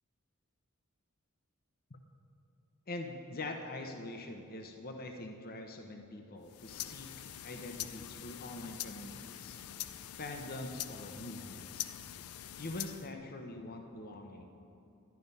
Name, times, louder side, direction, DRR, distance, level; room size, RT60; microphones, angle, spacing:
voice 1, 2.9-9.6 10.2-11.9 12.6-14.5, left 2 dB, 45° left, 4 dB, 0.8 m, -44 dB
sound 1, 6.4-13.1, left 11 dB, 85° left, 0.5 m, -44 dB
11.5 x 10.5 x 5.4 m, 2.7 s
head